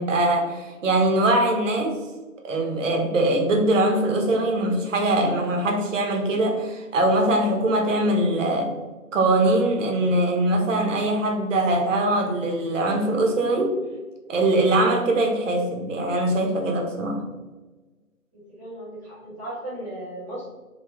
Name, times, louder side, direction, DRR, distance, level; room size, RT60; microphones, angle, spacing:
voice 1, 0.0-2.0 2.4-8.7 9.1-13.8 14.3-17.2, right 1 dB, 60° right, 2 dB, 0.6 m, -22 dB
voice 2, 18.3-20.5, right 1 dB, 10° right, -11 dB, 0.8 m, -36 dB
3.7 x 2.1 x 2.9 m, 1.2 s
figure-of-eight pair, 165°, 43 cm